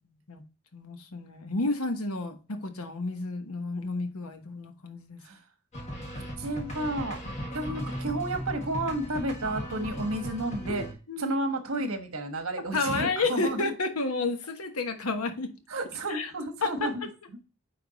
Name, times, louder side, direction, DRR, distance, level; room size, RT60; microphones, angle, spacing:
voice 1, 0.7-5.2 10.7-11.4 12.7-15.5 16.1-16.3 16.6-16.9, left 3 dB, 80° left, 1.1 m, -31 dB
sound 1, 5.7-10.9, equal, 30° left, 1.7 m, -37 dB
voice 2, 6.4-7.2 7.5-10.8 11.2-13.7 15.7-17.0 17.3-17.4, right 1 dB, 70° right, 1.3 m, -31 dB
9.4 x 3.5 x 4.0 m
head